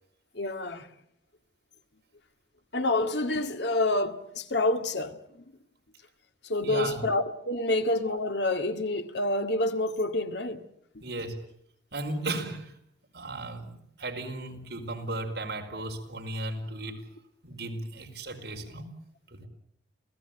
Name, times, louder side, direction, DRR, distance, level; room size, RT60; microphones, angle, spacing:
voice 1, 0.3-0.9 2.7-5.4 6.4-10.6 10.9-11.0, left 2 dB, 70° left, 2.0 m, -28 dB
voice 2, 6.6-7.0 11.0-11.4 11.9-12.7 13.1-17.0 17.4-19.0 19.3-19.5, right 2 dB, 60° right, 4.8 m, -35 dB
28.5 x 17.5 x 9.1 m
head